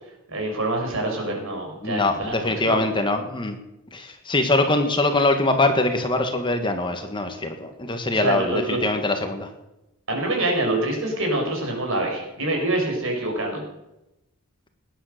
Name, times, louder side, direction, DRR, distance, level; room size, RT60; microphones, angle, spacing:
voice 1, 0.3-2.8 8.1-8.8 10.1-13.6, right 2 dB, 60° right, 1 dB, 5.7 m, -26 dB
voice 2, 1.8-3.6 3.9-9.5, left 2 dB, 20° left, 6 dB, 1.4 m, -23 dB
19.0 x 10.0 x 6.6 m, 0.92 s
head